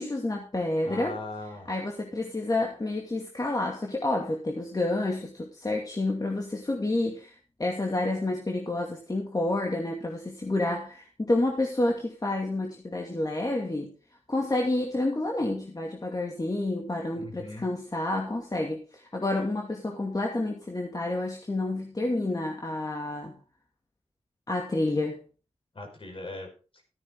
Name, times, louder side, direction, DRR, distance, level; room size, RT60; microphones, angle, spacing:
voice 1, 0.0-1.2 1.7-13.9 14.3-23.3 24.5-25.2, left 2 dB, 35° left, 0 dB, 2.4 m, -29 dB
voice 2, 0.8-1.7 17.1-17.7 25.7-26.5, left 2 dB, 55° left, 2 dB, 5.1 m, -39 dB
14.0 x 9.4 x 3.8 m, 0.35 s
cardioid pair, 55°, 11 cm